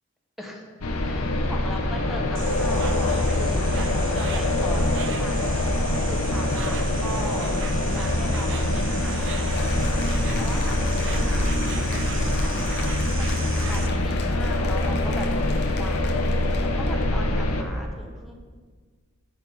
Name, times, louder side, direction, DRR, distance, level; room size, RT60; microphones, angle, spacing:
sound 1, 0.8-17.6, left 1 dB, 85° left, 0.8 m, -24 dB
voice 1, 1.0-5.6 6.1-18.3, equal, ahead, 0 dB, 0.9 m, -39 dB
Insect, 2.3-13.9, right 5 dB, 55° right, 0.6 m, -36 dB
Cheering / Applause, 9.5-17.0, left 5 dB, 50° left, 0.6 m, -40 dB
8.5 x 5.7 x 4.6 m, 1.5 s
head